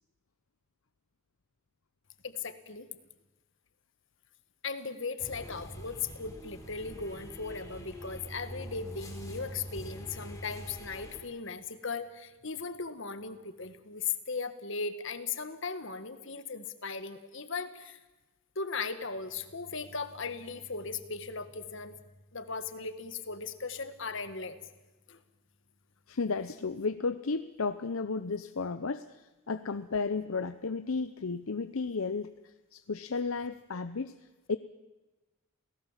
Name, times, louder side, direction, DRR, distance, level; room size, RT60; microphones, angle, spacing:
voice 1, 2.2-2.9 4.6-18.0 18.5-21.9 22.3-24.6 25.1-25.2, left 5 dB, 60° left, 11 dB, 1.6 m, -37 dB
sound 1, 5.2-11.2, equal, 15° left, 4.0 m, -44 dB
voice 2, 26.1-34.1 34.5-34.6, left 4 dB, 75° left, 11 dB, 0.7 m, -33 dB
28.5 x 18.0 x 7.4 m, 1.1 s
head